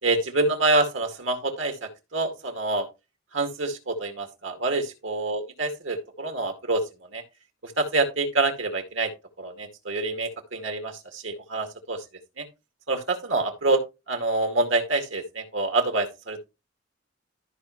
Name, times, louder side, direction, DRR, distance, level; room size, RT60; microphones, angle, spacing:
voice 1, 0.0-2.9 3.3-7.2 7.6-9.1 9.4-12.0 12.4-12.5 12.9-16.4, right 2 dB, 70° right, 2.2 m, -26 dB
13.5 x 5.4 x 3.1 m
head